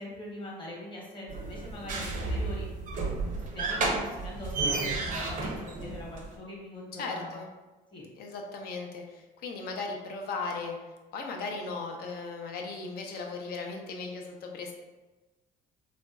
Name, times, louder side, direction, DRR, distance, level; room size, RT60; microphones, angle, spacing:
voice 1, 0.0-3.1 3.5-7.4 7.9-8.1, left 1 dB, 30° left, -3 dB, 1.0 m, -42 dB
sound 1, 1.3-6.3, right 3 dB, 50° right, 0.6 m, -32 dB
voice 2, 7.0-7.5 8.2-10.8 11.1-14.7, left 4 dB, 65° left, 2 dB, 0.6 m, -37 dB
3.0 x 2.5 x 2.3 m, 1.2 s
cardioid pair, 110°, 17 cm